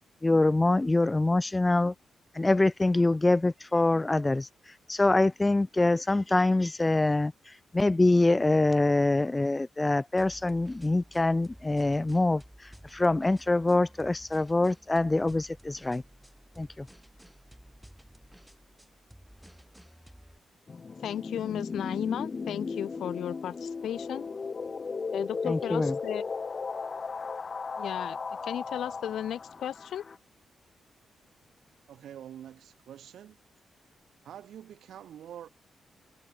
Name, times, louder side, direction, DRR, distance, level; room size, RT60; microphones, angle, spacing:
voice 1, 0.2-1.9 2.4-4.5 4.9-7.3 7.7-12.4 12.9-16.0 16.6-16.9 25.4-26.0, left 2 dB, 15° left, 0.5 m, -24 dB
sound 1, 10.2-20.4, equal, ahead, 4.4 m, -53 dB
sound 2, 20.7-30.2, left 4 dB, 35° left, 1.5 m, -36 dB
voice 2, 21.0-24.3 25.1-26.2 27.8-28.2 28.4-30.0, left 10 dB, 90° left, 0.7 m, -34 dB
voice 3, 31.9-33.4 34.2-35.5, right 10 dB, 90° right, 1.9 m, -46 dB
wide cardioid pair, 140°, 0 cm